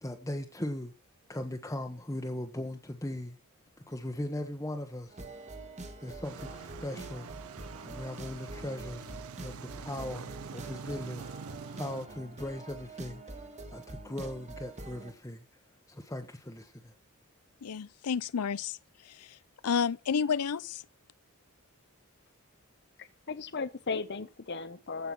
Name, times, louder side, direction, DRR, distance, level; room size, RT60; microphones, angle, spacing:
voice 1, 0.0-0.9 1.3-3.4 3.9-5.2 6.0-7.3 7.8-9.1 9.4-11.3 11.7-13.4 13.7-15.4 15.9-16.9, left 1 dB, 15° left, 1.0 m, -39 dB
sound 1, 5.1-15.1, right 2 dB, 30° right, 1.7 m, -45 dB
sound 2, 6.2-12.1, right 6 dB, 70° right, 0.5 m, -45 dB
voice 2, 17.6-18.8 19.0-19.4 19.6-20.8, left 6 dB, 90° left, 0.5 m, -31 dB
voice 3, 23.0-25.1, left 4 dB, 50° left, 0.8 m, -36 dB
15.5 x 5.7 x 6.1 m
head